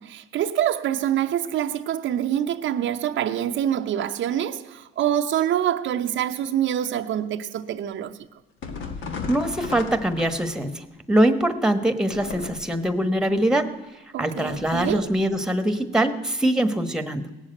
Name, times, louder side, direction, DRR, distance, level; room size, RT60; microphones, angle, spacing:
voice 1, 0.0-8.2 14.1-15.1, right 10 dB, 75° right, 0.7 m, -25 dB
sound 1, 8.6-10.7 12.1-12.9 14.5-15.2, left 4 dB, 75° left, 1.7 m, -35 dB
voice 2, 9.3-13.8 14.2-17.3, right 1 dB, 5° right, 1.2 m, -23 dB
17.5 x 7.3 x 8.9 m
cardioid pair, 90°, 20 cm